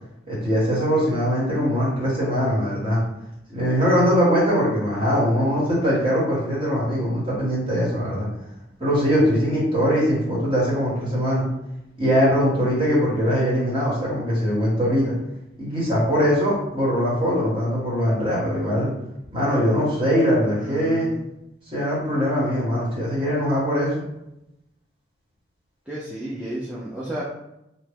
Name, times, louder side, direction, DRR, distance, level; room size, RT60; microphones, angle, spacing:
voice 1, 0.3-3.0 3.5-8.3 8.8-11.4 12.0-15.1 15.6-18.9 19.3-21.1 21.7-23.9, equal, 30° right, -6 dB, 1.2 m, -21 dB
voice 2, 20.6-21.2 25.9-27.2, right 1 dB, 5° right, -7 dB, 0.4 m, -32 dB
2.8 x 2.1 x 3.4 m, 0.87 s
head